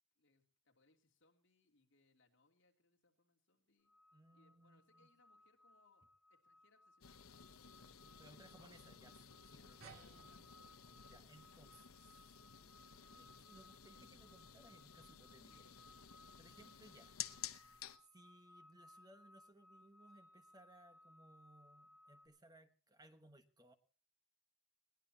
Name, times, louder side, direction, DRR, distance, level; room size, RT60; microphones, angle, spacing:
voice 1, 0.2-3.9 4.3-8.4 9.6-10.9, left 3 dB, 55° left, 2 dB, 2.9 m, -76 dB
sound 1, 3.8-22.3, left 1 dB, ahead, 5.2 m, -66 dB
voice 2, 4.1-5.1 8.2-10.3 11.0-12.0 13.1-15.7 16.4-17.2 18.0-23.7, right 1 dB, 20° right, 8 dB, 1.1 m, -64 dB
sound 2, 7.0-18.0, left 10 dB, 80° left, 1.0 m, -54 dB
sound 3, 9.8-14.7, right 4 dB, 80° right, 2.5 m, -65 dB
21.0 x 18.5 x 2.8 m, 0.40 s
head